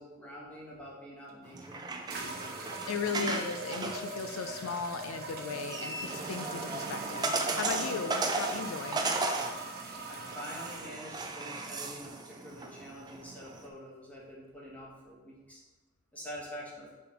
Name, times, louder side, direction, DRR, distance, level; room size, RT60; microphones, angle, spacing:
voice 1, 0.0-1.8 10.1-15.6 16.1-16.9, equal, 5° left, -5 dB, 1.3 m, -46 dB
sound 1, 1.3-1.4 2.1-10.9, right 3 dB, 45° right, 0.8 m, -41 dB
sound 2, 1.4-13.7, right 3 dB, 20° right, 0.4 m, -36 dB
voice 2, 2.9-9.0, left 5 dB, 70° left, 8 dB, 0.4 m, -36 dB
5.5 x 4.2 x 4.2 m, 1.2 s
head